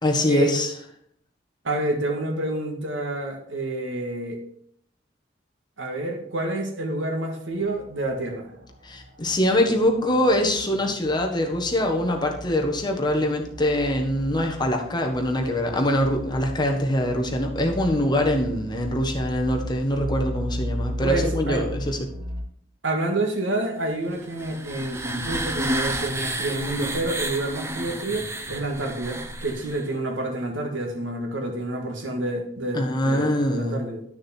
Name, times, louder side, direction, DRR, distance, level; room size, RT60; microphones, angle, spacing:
voice 1, 0.0-0.7 8.8-22.1 32.7-33.8, left 1 dB, 25° left, 2 dB, 1.3 m, -23 dB
voice 2, 1.6-4.4 5.8-8.5 21.0-21.6 22.8-34.0, right 1 dB, 90° right, 3 dB, 1.8 m, -28 dB
sound 1, 7.5-22.4, equal, 45° right, 1.5 m, -36 dB
sound 2, 24.1-29.9, right 1 dB, 15° right, 0.8 m, -31 dB
11.0 x 6.4 x 4.4 m, 0.68 s
head